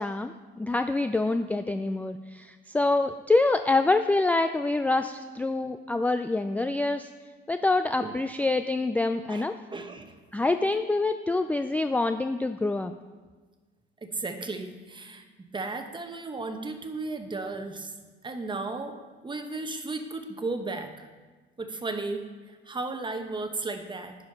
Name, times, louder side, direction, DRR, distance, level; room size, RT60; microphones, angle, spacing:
voice 1, 0.0-7.1 7.5-9.5 10.3-12.9, left 2 dB, 10° left, 8 dB, 0.3 m, -26 dB
voice 2, 9.3-10.1 14.0-17.9 18.2-19.0 19.2-21.1 21.6-24.1, right 3 dB, 25° right, 7 dB, 1.0 m, -35 dB
10.5 x 5.0 x 5.6 m, 1.3 s
cardioid pair, 90°, 20 cm